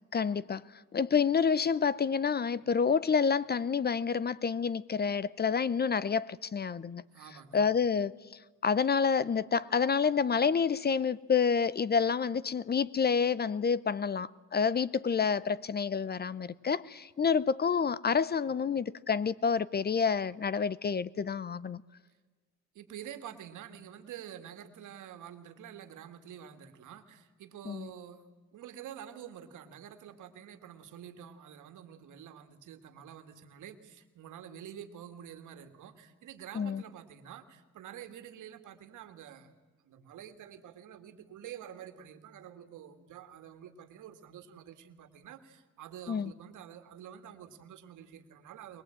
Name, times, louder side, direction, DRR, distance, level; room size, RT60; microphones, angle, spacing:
voice 1, 0.1-0.6 0.9-7.0 7.5-8.1 8.6-21.8 27.7-27.9 36.6-36.8 46.1-46.3, left 6 dB, 35° left, 0.7 m, -28 dB
voice 2, 7.1-7.6 22.7-28.2 28.5-39.5 39.8-48.8, right 9 dB, 80° right, 2.1 m, -48 dB
22.5 x 21.5 x 9.0 m
cardioid pair, 90°, 30 cm